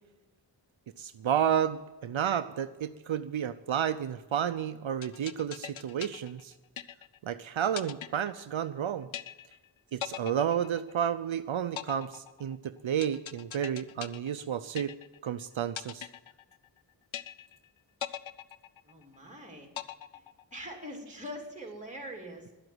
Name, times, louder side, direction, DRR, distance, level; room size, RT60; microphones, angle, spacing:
voice 1, 1.0-6.5 7.2-9.1 9.9-14.9 15.2-16.1, right 9 dB, 80° right, 10 dB, 0.6 m, -31 dB
sound 1, 5.0-7.3 7.8-8.8 9.1-9.7 10.0-11.3 11.8-15.3 15.8-16.8 17.1-17.7 18.0-19.3 19.8-20.8, left 10 dB, 80° left, 0.6 m, -41 dB
voice 2, 18.8-19.7 20.1-20.2 20.5-22.5, equal, 15° right, 1 dB, 3.1 m, -43 dB
11.5 x 7.9 x 9.4 m, 1.1 s
wide cardioid pair, 75°, 46 cm